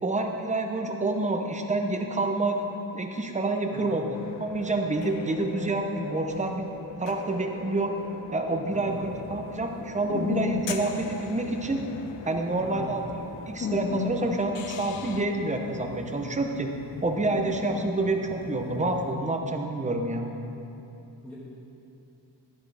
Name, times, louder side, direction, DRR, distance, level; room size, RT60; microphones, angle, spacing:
voice 1, 0.0-2.6 2.9-6.7 7.0-7.9 8.3-11.8 12.2-13.0 13.5-16.7 17.0-20.3, right 2 dB, 15° right, 3 dB, 0.7 m, -28 dB
sound 1, 4.1-15.3, left 7 dB, 70° left, 0.7 m, -42 dB
sound 2, 8.7-19.1, left 5 dB, 30° left, 0.4 m, -37 dB
voice 2, 8.7-9.0 12.6-12.9 21.2-21.3, left 1 dB, ahead, -9 dB, 1.5 m, -42 dB
12.0 x 12.0 x 3.4 m, 2.8 s
wide cardioid pair, 165°, 45 cm